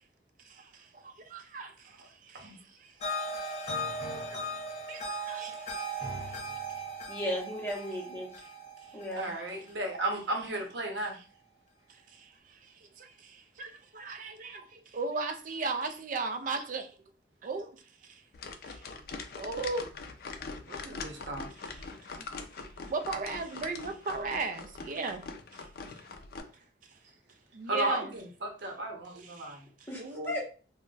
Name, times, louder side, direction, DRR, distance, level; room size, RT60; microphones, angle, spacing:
voice 1, 0.4-3.0 3.4-4.5 4.9-5.9 6.3-6.4 11.9-16.9 17.4-18.2 18.7-18.9 19.4-19.9 21.6-21.9 22.2-22.3 22.9-25.2 25.5-25.7 26.0-26.1 27.5-28.1 29.2-29.6 29.9-30.3, right 3 dB, 50° right, 0.4 m, -38 dB
sound 1, 3.0-10.1, right 1 dB, 40° left, 0.9 m, -38 dB
voice 2, 7.1-8.4 8.9-9.3 29.9-30.4, left 1 dB, 15° left, 0.8 m, -35 dB
voice 3, 9.2-11.2 20.7-21.5 27.7-29.6, right 1 dB, 85° right, 0.7 m, -34 dB
sound 2, 18.3-26.4, left 4 dB, 55° left, 0.4 m, -43 dB
2.3 x 2.1 x 3.8 m
head